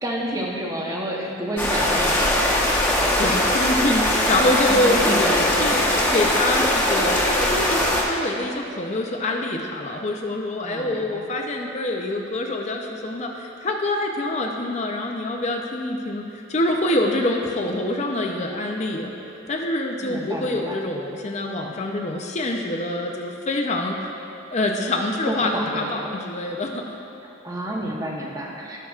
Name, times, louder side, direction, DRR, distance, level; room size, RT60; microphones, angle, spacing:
voice 1, 0.0-2.7 4.7-5.8 6.1-6.2 10.6-11.3 20.0-20.8 25.3-26.2 27.2-28.8, right 1 dB, 20° right, -2 dB, 0.9 m, -29 dB
sound 1, 1.6-8.0, left 1 dB, 10° left, 1.0 m, -21 dB
voice 2, 3.2-5.8 6.1-19.1 19.5-24.0 24.5-27.0, left 1 dB, 35° left, 1 dB, 0.5 m, -25 dB
16.0 x 5.7 x 2.4 m, 2.9 s
head